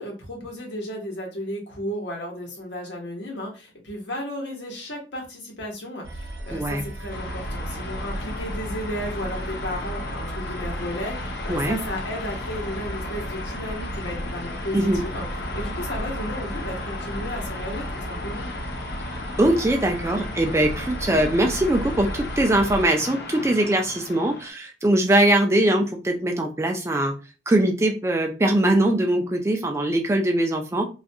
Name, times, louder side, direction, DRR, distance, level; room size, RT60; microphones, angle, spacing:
voice 1, 0.0-15.3 15.5-18.4, equal, 85° left, 0 dB, 1.0 m, -34 dB
sound 1, 6.0-22.9, right 1 dB, 85° right, 0.7 m, -35 dB
voice 2, 6.5-6.9 11.5-11.8 14.7-15.0 19.4-27.1 27.5-30.8, right 1 dB, 15° right, 3 dB, 0.3 m, -21 dB
sound 2, 7.1-24.5, left 3 dB, 60° left, 0.4 m, -35 dB
2.4 x 2.2 x 2.6 m, 0.32 s
head